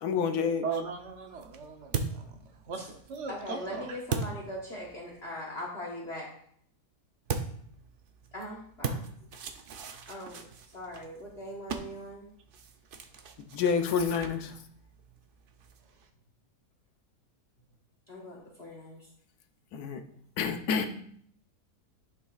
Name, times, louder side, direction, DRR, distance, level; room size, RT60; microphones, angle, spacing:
voice 1, 0.0-0.6 13.5-14.5 19.7-20.0 20.4-21.0, left 6 dB, 75° left, 7 dB, 1.2 m, -28 dB
voice 2, 0.6-2.3 2.6-4.0, right 5 dB, 55° right, 4 dB, 1.0 m, -38 dB
sound 1, 0.8-5.2 7.3-16.1, right 5 dB, 80° right, 0.4 m, -40 dB
voice 3, 3.3-6.3 8.3-9.0 10.1-10.4 10.7-12.3 18.1-19.1, left 1 dB, 45° left, -3 dB, 1.4 m, -40 dB
11.0 x 5.6 x 2.4 m, 0.64 s
omnidirectional pair, 1.7 m